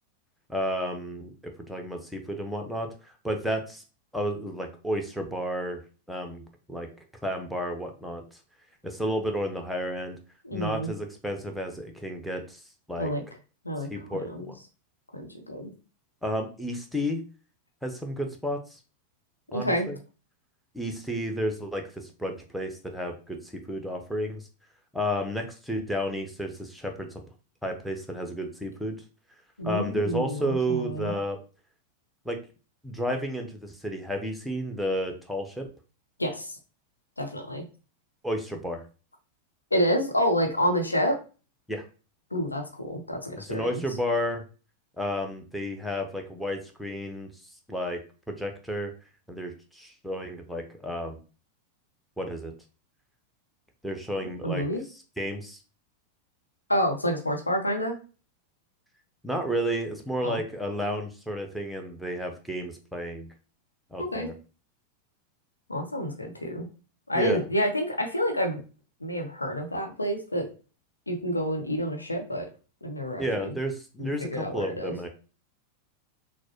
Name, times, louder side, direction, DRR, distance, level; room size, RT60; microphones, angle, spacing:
voice 1, 0.5-1.3 1.7-3.8 4.1-5.8 6.1-6.4 6.7-6.9 7.2-8.2 8.8-10.2 10.5-12.6 12.9-13.1 13.9-14.5 16.2-17.2 17.8-18.8 19.5-20.0 20.7-24.4 24.9-27.1 27.6-29.0 29.6-31.4 32.3-32.4 32.8-35.7 38.2-38.8 41.7-41.8 43.4-44.4 45.0-47.3 47.7-48.0 48.3-48.9 49.3-51.2 52.2-52.5 53.8-54.7 55.2-55.6 59.2-63.3 63.9-64.3 67.1-67.4 73.2-75.1, equal, ahead, 3 dB, 0.7 m, -31 dB
voice 2, 10.4-10.9 13.0-13.2 13.6-14.5 15.1-15.7 19.5-19.9 29.6-31.1 36.2-36.6 37.2-37.6 39.7-41.1 42.3-43.8 54.2-54.8 56.7-58.0 60.2-60.4 64.1-64.3 65.7-66.7 67.1-68.6 69.0-70.4 71.1-72.5 72.8-73.6 74.0-74.9, equal, 80° left, 3 dB, 0.8 m, -28 dB
6.1 x 2.1 x 2.9 m, 0.35 s
figure-of-eight pair, 90°, 0 cm